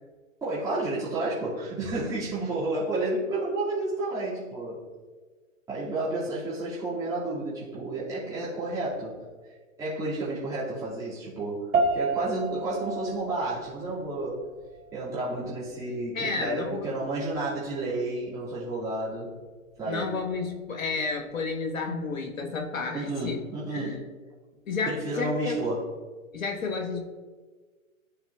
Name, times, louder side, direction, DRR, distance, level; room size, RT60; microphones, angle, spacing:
voice 1, 0.4-4.9 5.7-9.5 9.8-14.4 14.9-19.3 19.8-20.2 22.9-24.0 24.9-25.9, right 2 dB, 10° right, -11 dB, 1.8 m, -31 dB
sound 1, 11.7-21.3, right 3 dB, 70° right, 1.0 m, -34 dB
voice 2, 16.1-16.8 19.8-23.4 23.7-24.0 24.7-25.6 26.3-27.0, left 4 dB, 75° left, 3 dB, 1.2 m, -31 dB
11.0 x 3.8 x 2.2 m, 1.4 s
hypercardioid pair, 130°, 41 cm